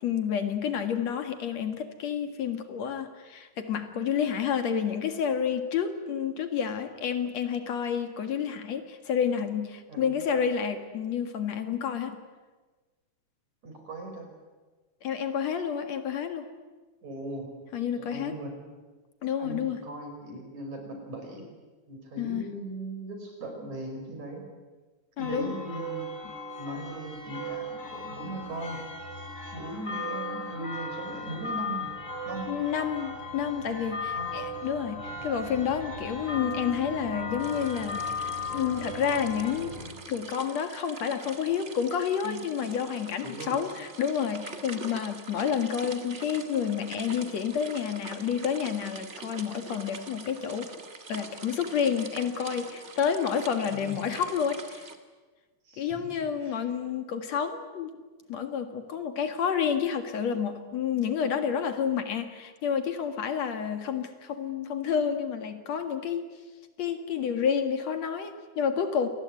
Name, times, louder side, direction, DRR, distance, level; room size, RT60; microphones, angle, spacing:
voice 1, 0.0-12.2 15.0-16.5 17.7-18.4 19.2-19.8 22.2-22.5 25.2-25.6 32.5-39.8 40.1-50.7 51.1-54.9 55.8-57.9 58.3-66.3 66.8-69.1, left 7 dB, 65° left, 7 dB, 2.9 m, -29 dB
voice 2, 13.6-14.3 17.0-17.5 18.0-18.5 19.4-21.4 21.9-24.4 25.2-26.1 26.6-28.8 29.5-31.9 32.2-32.5 34.1-34.3 43.2-43.6 53.7-54.0 55.6-56.1 56.4-56.6, right 2 dB, 70° right, 3 dB, 6.5 m, -39 dB
sound 1, 25.2-39.5, left 2 dB, 25° left, 3.8 m, -37 dB
sound 2, 30.2-40.0, right 1 dB, 50° right, 3.6 m, -46 dB
sound 3, 37.4-55.0, right 4 dB, 30° right, 1.5 m, -44 dB
27.0 x 20.0 x 9.5 m, 1.3 s
omnidirectional pair, 3.4 m